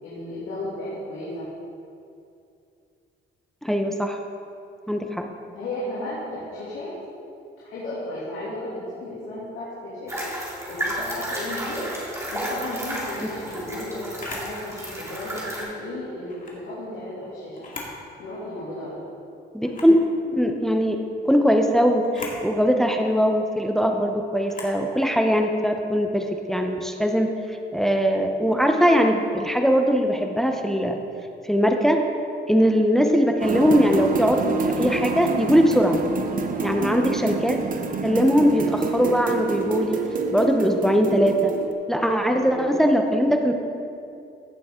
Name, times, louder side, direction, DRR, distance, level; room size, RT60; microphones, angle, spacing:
voice 1, 0.0-1.5 5.5-6.9 7.6-10.3 10.6-11.9 12.3-17.7 18.2-19.0 36.5-37.1 42.3-42.8, left 1 dB, 85° left, -9 dB, 2.7 m, -34 dB
voice 2, 3.6-4.2 4.9-5.3 19.5-20.0 20.3-21.0 21.2-27.3 27.7-31.0 31.5-32.0 32.4-36.0 36.6-37.6 38.0-40.0 40.3-41.5 41.9-43.6, equal, ahead, 4 dB, 0.8 m, -21 dB
sound 1, 10.1-15.6, right 1 dB, 15° right, 2.7 m, -32 dB
Camera, 14.2-14.5 16.2-16.6 17.5-18.0 18.4-18.5 19.6-20.0 22.0-22.4 24.5-24.8, left 3 dB, 45° left, 2.2 m, -38 dB
sound 2, 33.4-41.7, right 4 dB, 45° right, 0.9 m, -28 dB
15.5 x 6.8 x 3.8 m, 2.6 s
cardioid pair, 90°, 20 cm